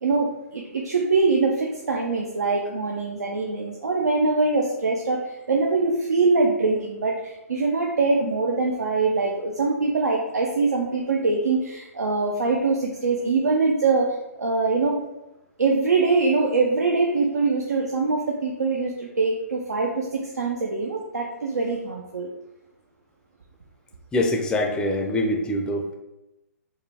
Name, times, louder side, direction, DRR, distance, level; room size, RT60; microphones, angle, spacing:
voice 1, 0.0-15.0 15.6-22.3, right 3 dB, 85° right, 0 dB, 0.6 m, -23 dB
voice 2, 24.1-25.9, left 1 dB, 10° left, 1 dB, 0.4 m, -24 dB
4.5 x 2.2 x 3.3 m, 0.96 s
figure-of-eight pair, 130°, 9 cm